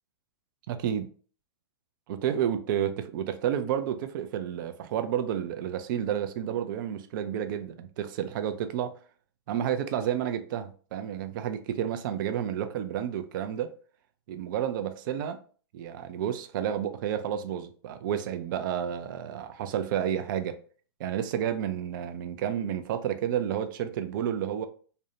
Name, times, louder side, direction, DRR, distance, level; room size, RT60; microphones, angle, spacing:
voice 1, 0.7-1.1 2.1-8.9 9.5-13.7 14.3-15.4 15.7-20.6 21.0-24.7, right 9 dB, 50° right, 0.4 m, -30 dB
2.5 x 2.1 x 2.7 m
hypercardioid pair, 120°, 14 cm